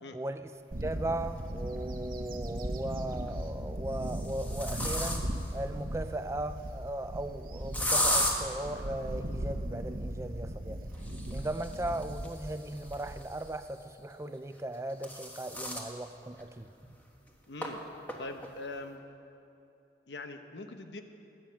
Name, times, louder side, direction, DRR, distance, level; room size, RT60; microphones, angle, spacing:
voice 1, 0.1-0.5 0.8-10.8 11.3-16.7, right 1 dB, 15° right, 0.4 m, -37 dB
Bird / Wind, 0.7-13.5, right 1 dB, 50° right, 0.9 m, -38 dB
sound 1, 1.4-1.5 2.9-3.3 3.9-5.5 7.7-8.3 10.9-13.6 14.6-15.9 16.4-16.5 16.8-16.9 17.6-17.7 18.1-18.5, left 1 dB, 10° left, 1.2 m, -34 dB
voice 2, 17.5-17.8 18.2-19.0 20.1-21.0, left 2 dB, 90° left, 1.0 m, -42 dB
20.0 x 8.9 x 5.9 m
head